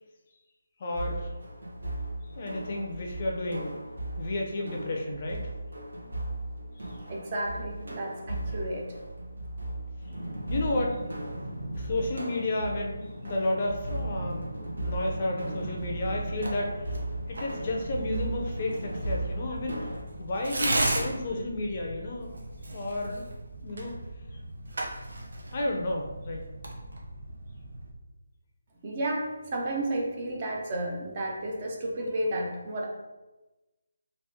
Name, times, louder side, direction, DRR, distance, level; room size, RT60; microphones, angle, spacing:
voice 1, 0.8-1.3 2.3-3.7 4.2-5.5 10.5-11.0 11.8-14.5 14.8-17.0 17.3-19.9 20.2-22.3 22.7-23.3 23.6-24.0 25.5-26.4, left 2 dB, 30° left, 0 dB, 0.5 m, -32 dB
sound 1, 0.9-20.0, right 1 dB, 90° right, 1.2 m, -37 dB
voice 2, 7.1-8.9 28.8-32.9, right 1 dB, 25° right, -1 dB, 0.6 m, -32 dB
sound 2, 10.1-20.2, right 1 dB, 45° right, 1.3 m, -41 dB
Tearing, 16.3-27.9, right 1 dB, 70° right, 0.8 m, -36 dB
3.0 x 2.8 x 3.4 m, 1.1 s
hypercardioid pair, 170°, 0 cm